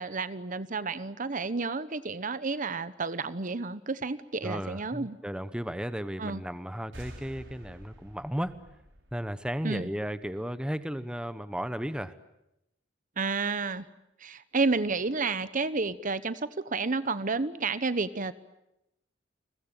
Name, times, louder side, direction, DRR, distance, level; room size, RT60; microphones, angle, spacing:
voice 1, 0.0-5.2 6.2-6.4 9.6-9.9 13.2-13.8 14.2-16.4 16.7-18.3, right 4 dB, 45° right, 15 dB, 1.0 m, -31 dB
voice 2, 4.4-8.5 9.1-12.1, equal, 5° right, 12 dB, 1.0 m, -34 dB
sound 1, 6.9-10.4, equal, 70° right, 5.6 m, -49 dB
30.0 x 21.5 x 9.0 m, 0.86 s
head